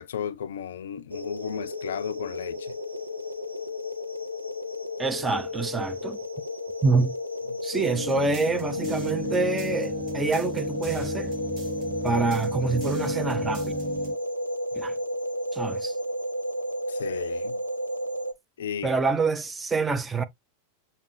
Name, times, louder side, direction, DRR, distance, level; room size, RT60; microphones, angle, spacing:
voice 1, 0.0-2.8 7.5-7.6 16.9-17.6 18.6-19.0, left 8 dB, 60° left, 0.3 m, -34 dB
sound 1, 1.1-18.3, left 1 dB, 90° right, 0.5 m, -32 dB
voice 2, 5.0-6.2 6.8-7.2 7.6-11.3 12.0-13.7 14.7-14.9 15.5-16.0 18.8-20.2, right 4 dB, 15° right, 0.5 m, -26 dB
sound 2, 7.7-14.1, right 1 dB, 35° right, 1.7 m, -34 dB
6.5 x 2.8 x 2.5 m
figure-of-eight pair, 90°, 0 cm